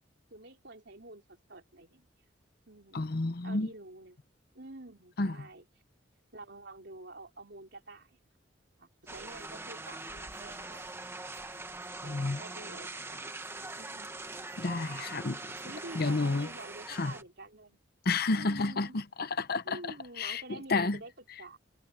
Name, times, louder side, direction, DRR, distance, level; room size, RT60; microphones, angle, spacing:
voice 1, 0.3-2.1 2.7-3.1 3.4-4.2 4.5-5.7 6.3-8.3 8.8-10.9 12.0-14.3 14.8-15.3 15.6-17.8 18.3-19.0 19.6-21.6, right 2 dB, 65° right, 4.5 m, -49 dB
voice 2, 2.9-3.7 5.2-5.4 12.0-12.4 14.6-15.4 15.9-16.5 16.9-17.1 18.0-19.8 20.2-21.0, left 3 dB, 55° left, 0.8 m, -30 dB
sound 1, 9.1-17.2, right 2 dB, 15° right, 1.2 m, -42 dB
head